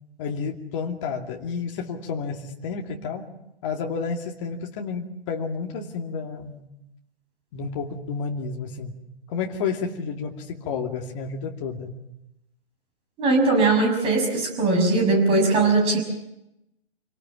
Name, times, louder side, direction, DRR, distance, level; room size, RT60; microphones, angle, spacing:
voice 1, 0.2-3.3 3.6-6.6 7.5-9.0 9.3-11.9, left 5 dB, 30° left, 2 dB, 2.5 m, -31 dB
voice 2, 13.2-16.0, right 3 dB, 20° right, 3 dB, 6.3 m, -20 dB
27.5 x 18.5 x 7.6 m, 0.87 s
figure-of-eight pair, 135°, 31 cm